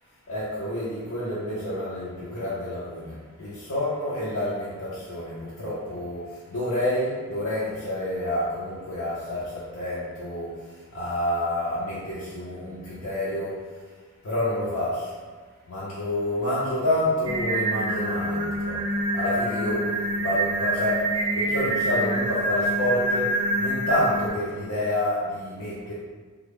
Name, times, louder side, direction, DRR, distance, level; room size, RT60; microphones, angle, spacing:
voice 1, 0.3-3.1 3.4-6.2 6.5-10.5 10.9-13.5 14.2-15.1 15.7-18.8 19.1-19.9 20.2-21.0 21.3-25.9, left 1 dB, 65° left, -9 dB, 0.6 m, -28 dB
Singing, 17.3-24.3, right 1 dB, 20° right, 0.3 m, -26 dB
3.4 x 2.0 x 3.5 m, 1.4 s
head